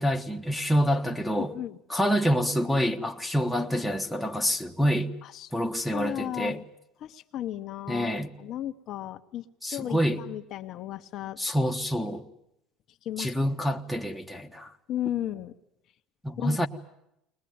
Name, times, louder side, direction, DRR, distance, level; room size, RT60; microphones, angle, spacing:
voice 1, 0.0-1.5 1.9-5.1 5.5-6.6 7.9-8.3 9.6-10.2 11.4-12.2 13.2-14.7 16.2-16.7, equal, ahead, 1.3 m, -27 dB
voice 2, 1.3-1.8 5.2-5.5 5.9-6.6 7.0-11.4 13.0-13.3 14.9-15.5 16.4-16.6, left 12 dB, 50° left, 1.0 m, -35 dB
21.5 x 20.5 x 9.5 m
cardioid pair, 120°, 0 cm